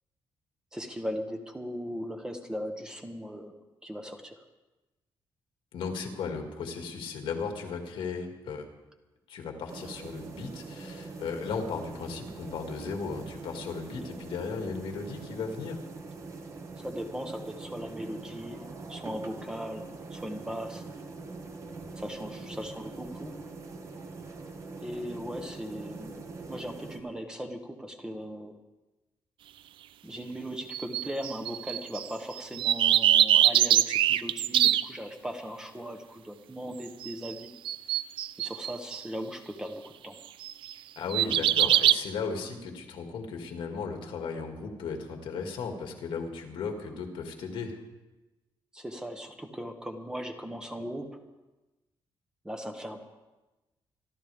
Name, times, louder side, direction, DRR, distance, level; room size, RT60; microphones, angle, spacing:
voice 1, 0.7-3.5 3.8-4.4 16.8-20.8 22.0-23.3 24.8-28.6 30.0-37.6 38.4-40.2 48.7-51.2 52.4-53.0, equal, 10° right, 5 dB, 1.0 m, -38 dB
voice 2, 5.7-8.7 9.3-15.8 41.0-47.8, left 5 dB, 70° left, 3 dB, 2.2 m, -36 dB
sound 1, 9.7-27.0, right 3 dB, 35° right, 1.3 m, -43 dB
sound 2, 30.7-32.1 32.4-34.8 37.0-37.3 37.6-39.0 40.4-40.7 41.1-41.9, right 11 dB, 70° right, 0.4 m, -23 dB
26.0 x 12.0 x 3.5 m, 1.1 s
cardioid pair, 180°, 9 cm